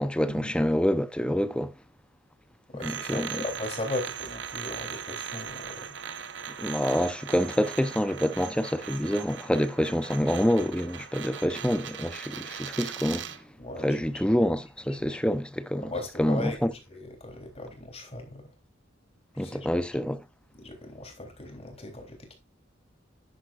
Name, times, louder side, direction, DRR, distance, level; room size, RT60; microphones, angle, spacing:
voice 1, 0.0-1.7 2.8-3.4 6.6-13.3 13.8-15.9 16.2-16.7 19.4-20.2, equal, 5° left, 0.7 m, -27 dB
voice 2, 2.7-5.9 13.6-14.2 15.1-15.2 15.8-18.5 19.3-19.7 20.5-22.3, left 2 dB, 35° left, 3.3 m, -38 dB
sound 1, 2.8-13.4, right 8 dB, 70° right, 1.0 m, -39 dB
10.0 x 9.7 x 2.4 m
head